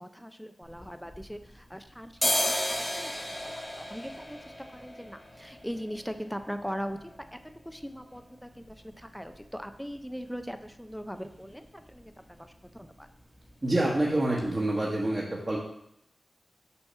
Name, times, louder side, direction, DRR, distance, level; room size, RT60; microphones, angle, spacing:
voice 1, 0.0-3.1 3.4-13.1, equal, ahead, 8 dB, 0.5 m, -40 dB
sound 1, 0.6-1.7 2.0-9.7 10.1-10.2 10.4-11.0 11.3-11.5 11.8-12.0 12.3-13.0 13.3-13.5 14.0-14.1 14.4-14.5, left 1 dB, 20° left, 1.5 m, -35 dB
voice 2, 13.6-15.6, right 1 dB, 35° right, -5 dB, 1.2 m, -27 dB
7.1 x 2.9 x 5.4 m, 0.76 s
cardioid pair, 55°, 0 cm